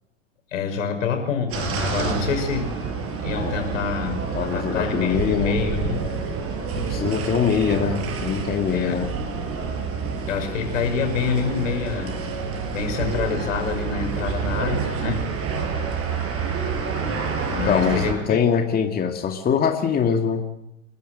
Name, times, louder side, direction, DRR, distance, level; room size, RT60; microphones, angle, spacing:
voice 1, 0.5-2.7 3.1-6.1 8.7-9.0 10.3-12.1 12.7-15.2 17.5-18.4, left 6 dB, 70° left, 5 dB, 6.2 m, -27 dB
sound 1, 1.5-18.1, right 5 dB, 35° right, 6.1 m, -28 dB
voice 2, 4.3-5.6 6.7-9.1 17.7-20.5, left 7 dB, 25° left, 4 dB, 2.0 m, -23 dB
29.0 x 12.0 x 7.9 m, 0.87 s
hypercardioid pair, 100°, 39 cm